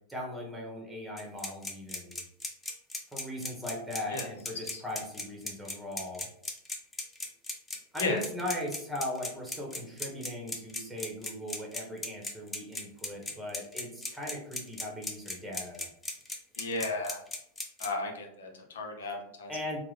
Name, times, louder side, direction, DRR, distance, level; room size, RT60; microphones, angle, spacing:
voice 1, 0.1-2.2 3.1-6.3 7.9-15.9 19.5-19.8, left 1 dB, 5° right, -1 dB, 1.2 m, -39 dB
sound 1, 1.2-17.9, left 2 dB, 15° left, 0.7 m, -36 dB
voice 2, 16.6-17.2 17.8-19.5, left 3 dB, 80° left, 2 dB, 0.8 m, -34 dB
3.5 x 2.2 x 3.3 m, 0.73 s
hypercardioid pair, 100°, 0 cm